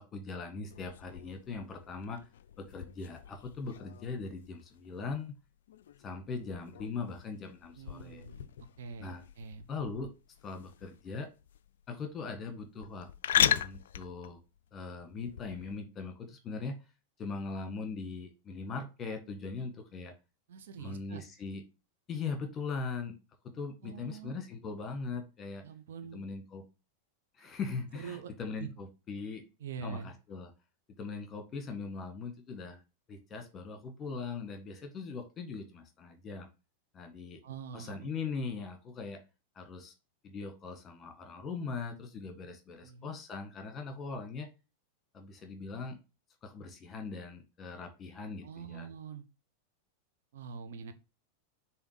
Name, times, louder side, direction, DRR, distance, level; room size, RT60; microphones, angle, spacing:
voice 1, 0.0-2.2 2.6-5.4 6.0-8.2 9.0-9.2 9.7-10.1 10.4-11.3 11.9-13.1 13.3-14.4 14.7-16.8 17.2-20.1 20.8-21.6 22.1-23.2 23.4-25.7 26.1-26.6 27.4-29.4 29.8-30.5 31.0-32.8 33.1-36.5 36.9-37.4 37.7-39.2 39.5-39.9 40.2-44.5 45.1-46.0 46.4-48.9, left 4 dB, 25° left, 6 dB, 1.7 m, -40 dB
sound 1, 0.7-15.8, left 10 dB, 60° left, 0.3 m, -38 dB
voice 2, 7.8-9.7 20.5-21.2 23.8-24.4 25.6-26.2 27.9-28.3 28.6-28.7 29.6-30.1 37.4-38.1 42.8-43.2 48.4-49.3 50.3-50.9, right 6 dB, 60° right, 8 dB, 0.9 m, -44 dB
7.0 x 3.1 x 5.6 m, 0.29 s
figure-of-eight pair, 90°, 0 cm